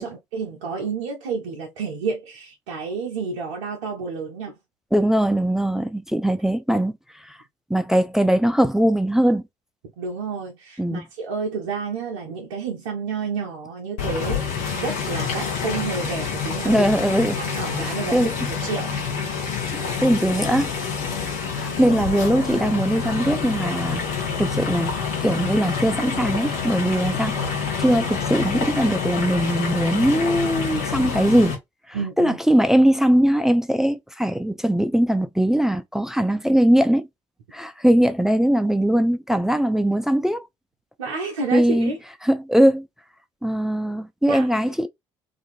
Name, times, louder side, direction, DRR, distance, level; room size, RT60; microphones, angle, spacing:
voice 1, 0.0-4.5 10.0-16.9 17.4-18.9 31.9-32.4 41.0-42.0 44.3-44.5, right 5 dB, 75° right, 0.6 m, -30 dB
voice 2, 4.9-6.9 7.7-9.4 10.8-11.1 16.6-17.4 17.8-18.3 19.7-20.7 21.5-24.0 24.4-24.9 25.2-27.4 27.8-31.6 32.2-37.0 37.5-40.4 41.5-41.9 42.2-42.9 43.4-44.9, right 1 dB, 5° right, 0.4 m, -20 dB
sound 1, 14.0-31.5, left 6 dB, 70° left, 1.0 m, -27 dB
2.5 x 2.5 x 2.4 m
figure-of-eight pair, 50°, 16 cm